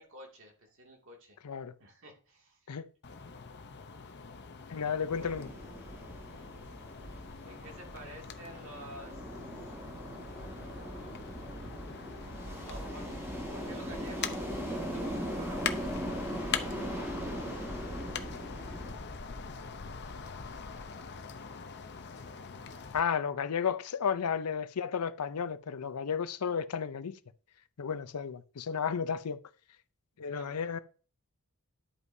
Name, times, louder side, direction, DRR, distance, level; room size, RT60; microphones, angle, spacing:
voice 1, 0.0-1.4 1.8-2.7 4.6-4.9 5.1-5.8 7.0-9.4 10.1-11.5 12.6-13.2 13.5-15.8 30.3-30.8, right 1 dB, 60° right, 2.3 m, -51 dB
sound 1, 3.0-23.0, left 6 dB, 50° left, 0.7 m, -43 dB
voice 2, 4.7-5.5 22.9-27.2 27.8-29.4 30.2-30.8, left 6 dB, 90° left, 0.6 m, -33 dB
sound 2, 5.1-18.9, right 1 dB, 10° right, 1.6 m, -40 dB
11.5 x 8.1 x 2.7 m
head